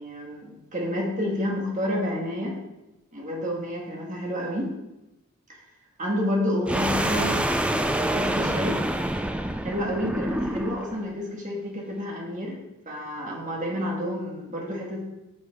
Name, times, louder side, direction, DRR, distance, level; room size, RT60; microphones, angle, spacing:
voice 1, 0.0-2.6 3.1-4.7 6.0-7.4 7.7-8.8 9.6-15.0, equal, 35° right, -1 dB, 1.7 m, -29 dB
sound 1, 6.7-11.0, right 1 dB, 5° right, 0.4 m, -26 dB
9.9 x 5.3 x 3.7 m, 0.96 s
head